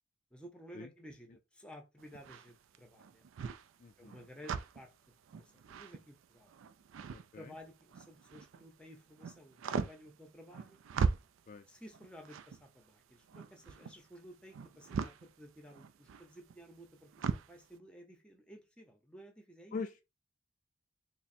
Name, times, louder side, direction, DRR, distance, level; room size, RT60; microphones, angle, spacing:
voice 1, 0.3-3.3 4.0-6.5 7.3-10.8 11.7-19.8, equal, 5° left, 0.6 m, -54 dB
sound 1, 2.0-8.7 9.0-17.6, right 5 dB, 85° right, 0.4 m, -40 dB
voice 2, 3.8-4.2 7.1-7.5 11.5-11.6 19.7-20.0, left 4 dB, 40° left, 0.3 m, -43 dB
3.5 x 2.1 x 4.1 m
head